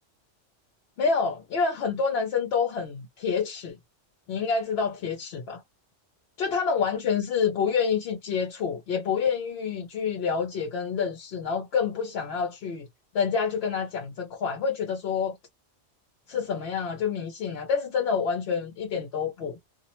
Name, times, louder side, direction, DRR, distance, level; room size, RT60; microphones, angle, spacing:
voice 1, 1.0-3.8 4.3-5.6 6.4-12.9 13.1-15.3 16.3-19.6, left 6 dB, 65° left, 0.8 m, -27 dB
2.4 x 2.0 x 2.8 m
omnidirectional pair, 1.2 m